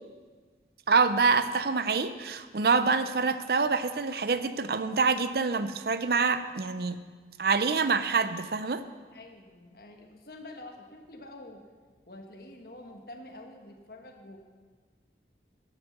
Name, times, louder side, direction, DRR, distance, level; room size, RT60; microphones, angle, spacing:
voice 1, 0.9-7.0 7.4-8.8, right 4 dB, 60° right, 12 dB, 0.6 m, -26 dB
voice 2, 9.1-11.6 12.1-14.4, left 1 dB, 55° left, 2 dB, 1.4 m, -47 dB
11.5 x 8.1 x 6.7 m, 1.5 s
head